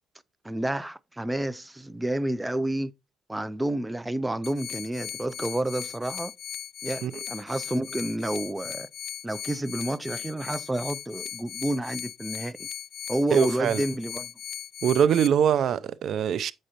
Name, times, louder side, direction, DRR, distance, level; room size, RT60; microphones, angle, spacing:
voice 1, 0.4-2.9 3.3-6.3 6.8-8.9 9.2-12.7 13.1-14.3, right 1 dB, 10° right, 0.4 m, -30 dB
sound 1, 4.4-15.3, left 9 dB, 60° left, 0.4 m, -38 dB
voice 2, 13.3-13.8 14.8-16.5, right 8 dB, 70° right, 0.5 m, -23 dB
7.7 x 6.2 x 2.8 m
cardioid pair, 90°, 0 cm